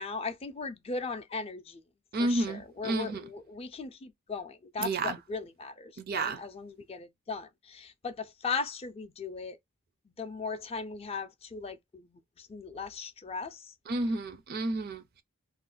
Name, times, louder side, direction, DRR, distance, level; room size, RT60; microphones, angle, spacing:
voice 1, 0.0-1.8 2.2-9.6 10.1-13.8, left 4 dB, 25° left, 0.4 m, -38 dB
voice 2, 2.1-3.2 4.8-5.2 6.0-6.4 13.9-15.2, right 2 dB, 45° right, 0.4 m, -31 dB
2.4 x 2.2 x 3.8 m
head